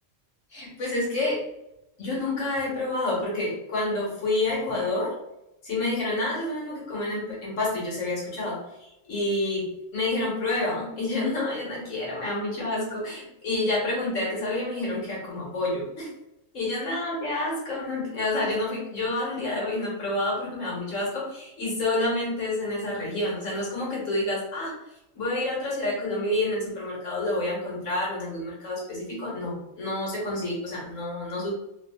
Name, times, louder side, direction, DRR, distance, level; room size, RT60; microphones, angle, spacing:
voice 1, 0.5-1.5 2.0-5.2 5.6-8.6 9.1-16.1 16.5-24.7 25.1-31.5, left 2 dB, 70° left, -5 dB, 1.5 m, -28 dB
3.4 x 2.4 x 2.3 m, 0.89 s
omnidirectional pair, 1.3 m